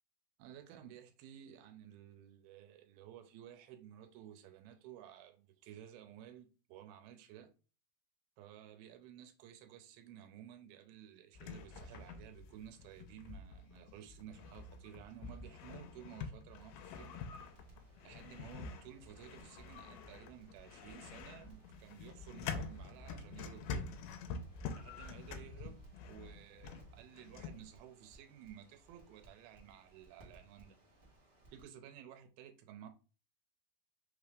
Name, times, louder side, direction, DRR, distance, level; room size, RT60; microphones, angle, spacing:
voice 1, 0.4-7.5 8.4-17.2 18.0-23.9 24.8-25.8 26.1-30.8 31.5-32.9, right 10 dB, 90° right, 2.5 m, -54 dB
sound 1, 11.4-27.6, left 5 dB, 85° left, 2.4 m, -47 dB
Crackle, 17.3-31.7, right 2 dB, 65° right, 0.7 m, -64 dB
5.5 x 3.3 x 2.4 m
omnidirectional pair, 4.3 m